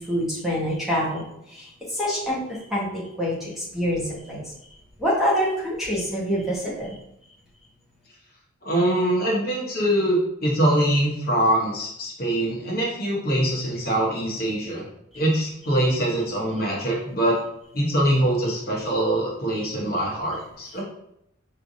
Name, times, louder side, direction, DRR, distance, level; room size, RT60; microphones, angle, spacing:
voice 1, 0.0-4.4 5.0-6.9, equal, ahead, -7 dB, 1.2 m, -26 dB
voice 2, 8.6-14.8 15.1-17.4 17.7-20.8, right 1 dB, 45° left, -3 dB, 1.0 m, -23 dB
4.9 x 3.2 x 2.7 m, 0.75 s
head